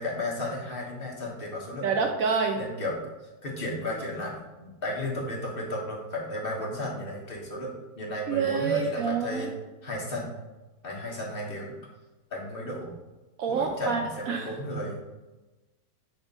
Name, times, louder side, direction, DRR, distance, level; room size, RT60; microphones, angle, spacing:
voice 1, 0.0-2.1 2.6-3.0 3.4-9.5 9.8-10.3 10.8-11.7 12.3-12.9 13.5-15.0, left 1 dB, 35° left, -2 dB, 1.4 m, -34 dB
voice 2, 1.8-2.6 8.3-9.5 13.4-14.5, right 5 dB, 70° right, 4 dB, 0.8 m, -27 dB
6.3 x 3.0 x 5.3 m, 1.1 s
omnidirectional pair, 1.9 m